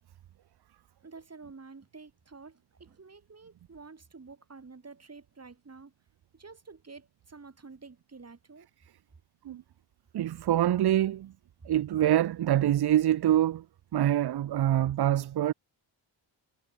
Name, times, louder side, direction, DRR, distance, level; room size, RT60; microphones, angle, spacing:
voice 1, 1.0-5.9 6.3-8.7 11.6-11.7, right 4 dB, 30° right, 4.4 m, -49 dB
voice 2, 10.1-11.3 11.7-13.6 13.9-15.5, right 12 dB, 50° right, 0.7 m, -25 dB
cardioid pair, 100°, 49 cm